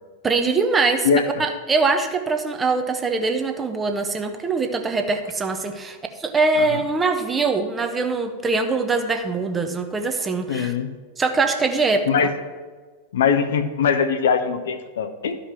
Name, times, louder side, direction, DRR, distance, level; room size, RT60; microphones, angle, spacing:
voice 1, 0.2-1.1 1.4-10.7 11.2-12.3, right 4 dB, 15° right, 6 dB, 1.0 m, -23 dB
voice 2, 10.5-10.9 12.1-12.3 13.1-15.4, left 6 dB, 60° left, 10 dB, 0.7 m, -21 dB
12.5 x 5.1 x 6.2 m, 1.4 s
figure-of-eight pair, 90°, 0 cm